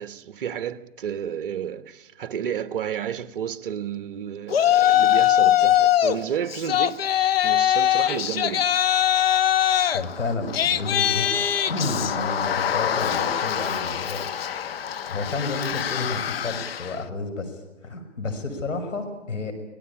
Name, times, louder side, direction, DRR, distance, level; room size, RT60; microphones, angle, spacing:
voice 1, 0.0-8.8, right 9 dB, 45° right, 1.2 m, -31 dB
Yell, 4.5-6.2 6.5-16.9, left 11 dB, 55° left, 0.9 m, -22 dB
voice 2, 9.9-14.2 15.1-19.5, left 3 dB, 85° left, 6.2 m, -31 dB
26.0 x 18.5 x 8.8 m
hypercardioid pair, 150°, 37 cm